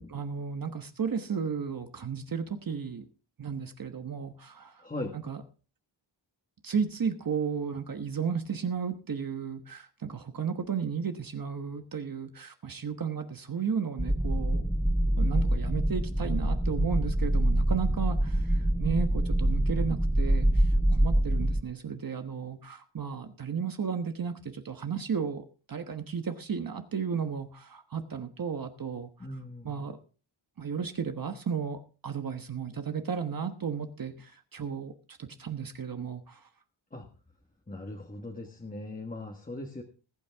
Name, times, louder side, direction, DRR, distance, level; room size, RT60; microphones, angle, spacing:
voice 1, 0.1-3.0 3.4-4.8 5.1-5.4 6.6-14.6 15.2-29.1 29.6-30.0 30.6-36.4, right 6 dB, 45° right, 7 dB, 1.2 m, -34 dB
voice 2, 4.8-5.1 29.2-29.9 36.9-37.1 37.7-39.8, left 2 dB, 20° left, 1 dB, 1.5 m, -39 dB
sound 1, 14.0-21.6, right 1 dB, ahead, 0.5 m, -25 dB
20.5 x 8.5 x 3.5 m, 0.36 s
wide cardioid pair, 145°, 46 cm